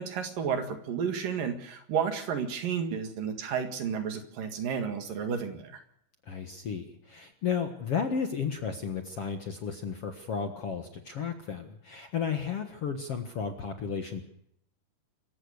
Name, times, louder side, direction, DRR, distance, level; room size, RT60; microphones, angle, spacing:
voice 1, 0.0-5.8, right 7 dB, 65° right, 8 dB, 3.5 m, -32 dB
voice 2, 6.3-14.2, left 6 dB, 55° left, 6 dB, 1.9 m, -33 dB
26.5 x 15.5 x 6.6 m, 0.72 s
omnidirectional pair, 4.5 m